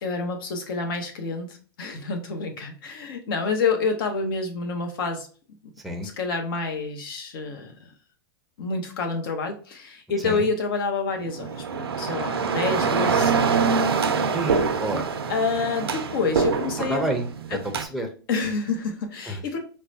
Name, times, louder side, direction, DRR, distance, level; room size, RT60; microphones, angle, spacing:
voice 1, 0.0-5.3 6.0-7.7 8.6-13.7 15.3-17.0 18.3-19.6, left 4 dB, 65° left, 5 dB, 0.9 m, -28 dB
sound 1, 11.2-17.8, right 5 dB, 90° right, 0.5 m, -25 dB
voice 2, 14.3-15.0 16.9-18.1 19.3-19.6, right 1 dB, ahead, 3 dB, 0.6 m, -29 dB
4.6 x 2.2 x 2.6 m, 0.40 s
hypercardioid pair, 115°, 13 cm